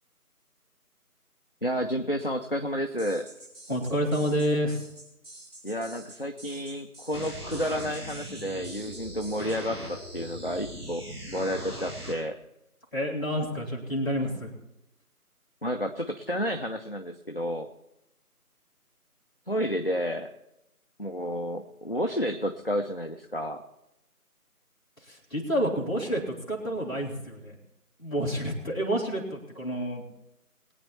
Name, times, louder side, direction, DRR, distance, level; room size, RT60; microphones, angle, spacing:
voice 1, 1.6-3.3 5.6-11.0 11.3-12.4 15.6-17.7 19.5-20.3 21.0-23.6, equal, 40° left, 4 dB, 0.6 m, -31 dB
sound 1, 3.0-9.6, right 1 dB, 50° right, 5.9 m, -48 dB
voice 2, 3.7-4.8 12.9-14.5 25.0-27.6 28.0-30.0, equal, 15° left, -9 dB, 2.6 m, -29 dB
sound 2, 7.1-12.1, equal, 80° right, 5.7 m, -40 dB
22.0 x 9.0 x 4.2 m, 0.88 s
figure-of-eight pair, 170°, 46 cm